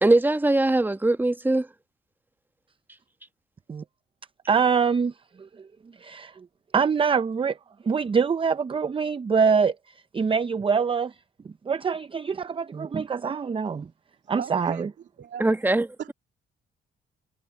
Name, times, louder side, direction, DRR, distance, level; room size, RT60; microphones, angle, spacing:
voice 1, 0.0-1.7 15.4-16.1, right 2 dB, 10° right, 1.1 m, -21 dB
voice 2, 4.5-5.1 6.0-6.3 6.7-7.6 7.9-9.7 10.1-11.1 11.7-13.9 14.3-14.9, right 6 dB, 25° right, 0.6 m, -24 dB
voice 3, 14.4-15.5 16.0-16.1, right 9 dB, 65° right, 2.5 m, -38 dB
cardioid pair, 90°, 20 cm